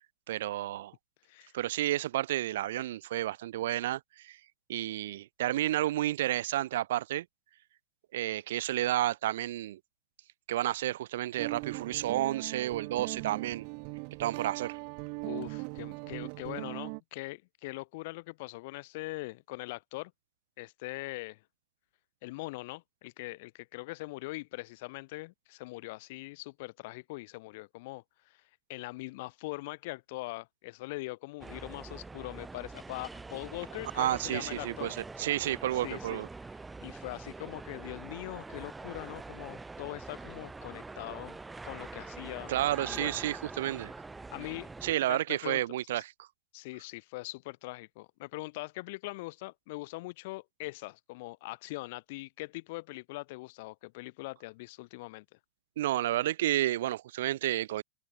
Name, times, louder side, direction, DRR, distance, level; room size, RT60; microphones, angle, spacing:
voice 1, 0.3-0.9 1.5-4.4 4.7-7.3 8.1-9.8 10.5-13.7 14.2-14.8 34.0-36.3 42.5-43.9 44.8-46.3 55.8-57.8, right 14 dB, 75° right, 0.4 m, -31 dB
Guitar, 11.4-17.0, right 40 dB or more, 55° right, 1.5 m, -40 dB
voice 2, 15.2-20.1 20.6-21.4 22.2-28.4 28.7-34.9 35.8-36.2 36.8-41.4 41.6-42.5 42.8-43.2 44.3-45.6 46.5-55.2, left 22 dB, 60° left, 4.2 m, -42 dB
sound 1, 31.4-44.9, right 3 dB, 10° right, 4.3 m, -44 dB
hypercardioid pair, 110°, 0 cm